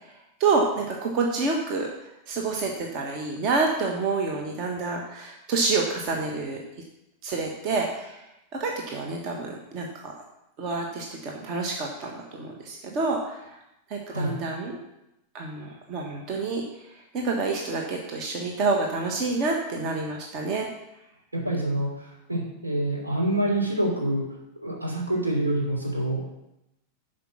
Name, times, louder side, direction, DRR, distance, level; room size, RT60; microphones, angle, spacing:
voice 1, 0.4-1.9 2.3-6.6 7.2-8.2 8.5-10.1 10.6-13.6 13.9-14.8 15.3-16.6 17.1-20.7, right 3 dB, 40° right, 0 dB, 1.4 m, -28 dB
voice 2, 21.3-24.2 24.6-26.3, right 1 dB, 80° right, -2 dB, 3.3 m, -26 dB
11.0 x 5.1 x 6.1 m, 0.87 s
figure-of-eight pair, 90°, 0 cm